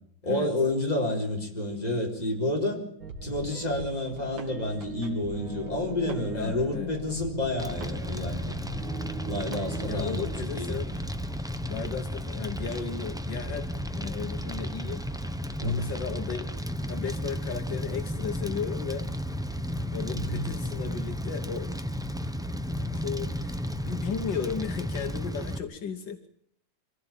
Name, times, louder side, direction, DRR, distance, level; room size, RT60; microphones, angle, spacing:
voice 1, 0.2-2.8 3.2-8.6 9.2-10.8 15.6-15.9 20.1-20.5, left 1 dB, 20° left, 1 dB, 4.3 m, -30 dB
sound 1, 3.0-10.4, right 3 dB, 85° right, 3.1 m, -40 dB
voice 2, 6.3-6.9 9.9-10.9 11.7-13.7 14.0-15.0 15.6-16.5 16.8-19.1 19.9-21.7 22.9-26.3, left 6 dB, 75° left, 7 dB, 1.9 m, -35 dB
Fire, 7.6-25.6, equal, 5° right, 0.5 m, -33 dB
24.5 x 15.5 x 9.0 m, 0.71 s
omnidirectional pair, 2.1 m